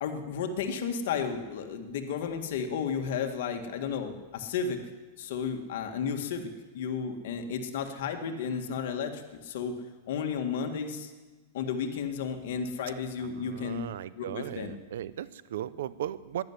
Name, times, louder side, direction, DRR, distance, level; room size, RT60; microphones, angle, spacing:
voice 1, 0.0-4.8 5.2-9.8 10.1-11.1 11.5-14.7, left 6 dB, 65° left, 5 dB, 1.9 m, -33 dB
voice 2, 13.2-16.4, right 11 dB, 75° right, 18 dB, 0.7 m, -37 dB
11.5 x 11.0 x 9.7 m, 1.3 s
supercardioid pair, 145°, 0 cm